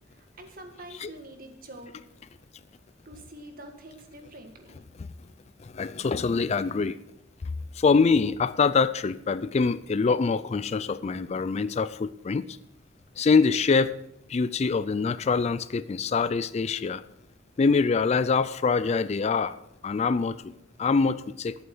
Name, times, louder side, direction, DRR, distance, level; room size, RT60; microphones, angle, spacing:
voice 1, 0.1-2.0 3.1-4.8, right 1 dB, 50° right, 5 dB, 1.8 m, -46 dB
voice 2, 5.6-7.0 7.7-12.6 13.2-13.9 14.3-17.0 17.6-19.5 19.8-20.4 20.8-21.5, left 4 dB, 35° left, 15 dB, 0.4 m, -24 dB
11.5 x 8.6 x 6.1 m, 0.82 s
head